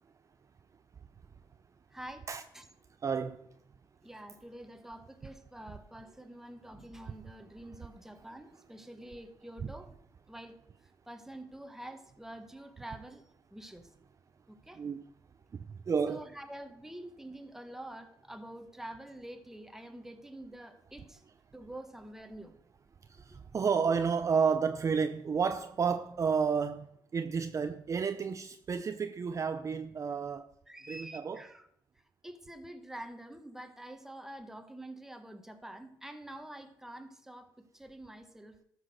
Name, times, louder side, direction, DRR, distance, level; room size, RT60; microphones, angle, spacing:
voice 1, 1.9-2.2 2.5-2.7 4.0-9.9 10.3-10.6 11.1-13.9 14.5-14.8 16.1-21.2 21.5-22.6 23.4-23.5 30.7-31.7 32.2-38.6, right 1 dB, 5° right, 1.3 m, -47 dB
voice 2, 3.0-3.5 9.6-9.7 14.8-15.0 15.5-16.2 23.1-30.5 30.9-31.4, right 6 dB, 35° right, 0.6 m, -31 dB
13.0 x 6.1 x 6.3 m
cardioid pair, 100°, 9 cm